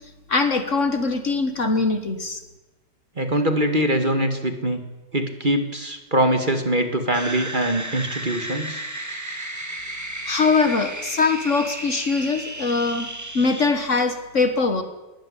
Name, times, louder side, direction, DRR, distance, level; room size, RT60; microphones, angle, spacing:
voice 1, 0.3-2.4 10.3-13.1 13.3-14.8, left 4 dB, 45° left, 8 dB, 1.7 m, -22 dB
voice 2, 3.2-4.8 5.1-8.8, right 1 dB, 30° right, 7 dB, 2.0 m, -23 dB
sound 1, 7.1-13.7, right 1 dB, 10° right, 1.9 m, -33 dB
21.0 x 13.0 x 10.0 m, 1.1 s
omnidirectional pair, 1.9 m